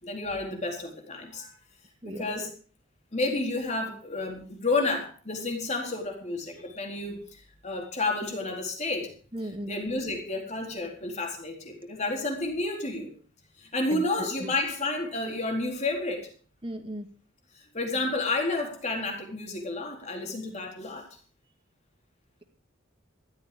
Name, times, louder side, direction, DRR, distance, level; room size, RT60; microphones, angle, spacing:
voice 1, 0.0-1.5 2.0-2.5 3.1-9.1 9.7-13.1 13.6-16.3 17.5-21.1, left 2 dB, 35° left, 2 dB, 4.1 m, -31 dB
voice 2, 9.3-9.7 13.9-14.5 16.6-17.1, right 1 dB, 25° right, 6 dB, 2.2 m, -36 dB
14.5 x 13.0 x 5.2 m, 0.41 s
head